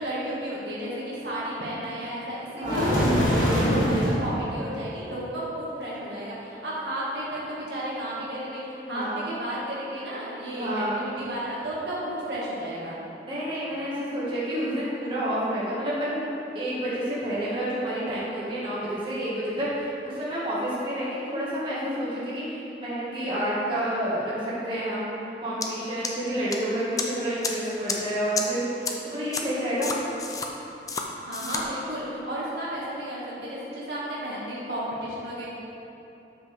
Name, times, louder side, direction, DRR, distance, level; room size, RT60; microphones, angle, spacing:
voice 1, 0.0-13.0 31.3-35.5, right 1 dB, 75° right, -7 dB, 2.1 m, -33 dB
sound 1, 2.6-4.2, equal, 45° left, 2.1 m, -22 dB
voice 2, 2.6-3.0 8.9-9.2 10.6-11.0 13.2-16.3 16.5-25.0 25.4-30.0, right 1 dB, 30° right, -9 dB, 2.0 m, -29 dB
sound 2, 25.6-25.7 26.0-26.6 27.0-27.1 27.4-27.5 27.9-28.0 28.4-28.5 28.9-29.0 29.3-29.4 29.8-30.5 30.9-31.0 31.3-31.6, left 5 dB, 20° left, 0.6 m, -29 dB
12.5 x 6.0 x 3.6 m, 2.9 s
head